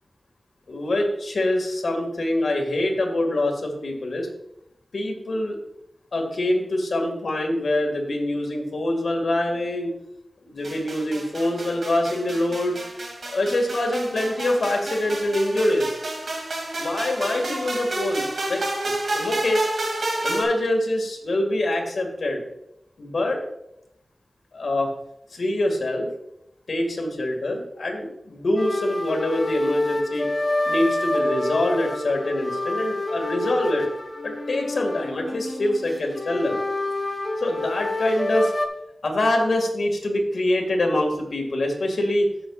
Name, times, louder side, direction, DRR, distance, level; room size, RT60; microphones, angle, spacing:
voice 1, 0.7-4.3 4.9-5.6 6.1-10.0 10.4-12.8 13.2-15.9 16.8-18.6 19.1-19.7 20.2-22.4 23.0-23.4 24.5-24.9 25.3-26.1 26.7-30.3 30.7-33.9 34.2-36.6 37.4-38.5 39.0-42.3, left 1 dB, 80° left, 2 dB, 1.8 m, -24 dB
sound 1, 10.6-20.4, right 2 dB, 70° right, 2.3 m, -30 dB
sound 2, 28.6-38.7, left 2 dB, 40° left, 0.8 m, -28 dB
14.5 x 6.3 x 2.4 m, 0.81 s
wide cardioid pair, 85°, 0 cm